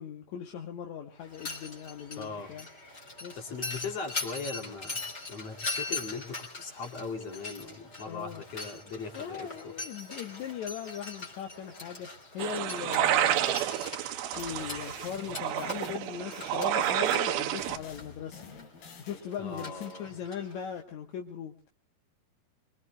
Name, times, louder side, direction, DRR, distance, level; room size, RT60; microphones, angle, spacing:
voice 1, 0.0-2.7 3.2-3.5 8.1-8.4 9.1-13.6 14.4-18.4 19.0-21.7, left 8 dB, 65° left, 3 dB, 2.2 m, -39 dB
Mechanisms, 1.2-20.8, left 3 dB, 20° left, 3.3 m, -42 dB
voice 2, 2.2-2.5 3.4-5.0 5.3-9.7 19.4-20.1, left 4 dB, 45° left, 4 dB, 3.4 m, -39 dB
sound 1, 12.4-17.8, right 11 dB, 85° right, 2.8 m, -29 dB
sound 2, 14.3-17.2 17.6-19.9, left 5 dB, 80° left, 4.2 m, -49 dB
24.0 x 24.0 x 2.3 m, 0.40 s
omnidirectional pair, 4.3 m